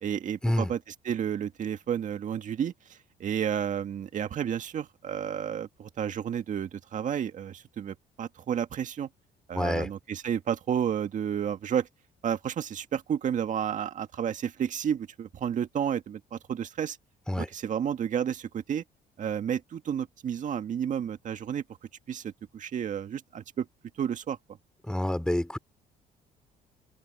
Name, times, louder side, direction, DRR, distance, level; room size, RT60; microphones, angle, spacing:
voice 1, 0.0-9.1 9.5-11.9 12.2-17.0 17.4-18.8 19.2-21.6 22.1-23.7 24.0-24.4, right 8 dB, 50° right, 1.9 m, -31 dB
voice 2, 9.5-9.9 17.3-17.5 24.9-25.6, left 1 dB, 5° left, 3.5 m, -27 dB
cardioid pair, 110°, 17 cm